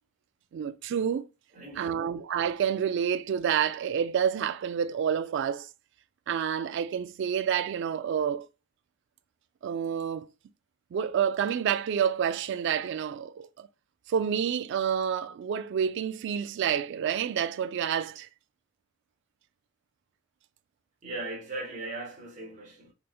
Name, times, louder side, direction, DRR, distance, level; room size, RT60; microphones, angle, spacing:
voice 1, 0.5-1.2 1.8-5.7 6.3-8.5 9.6-10.3 10.9-13.7 14.1-18.3, right 8 dB, 65° right, 0.3 m, -28 dB
voice 2, 1.5-2.1 21.0-22.9, right 2 dB, 40° right, 1.0 m, -38 dB
3.3 x 3.1 x 2.2 m
head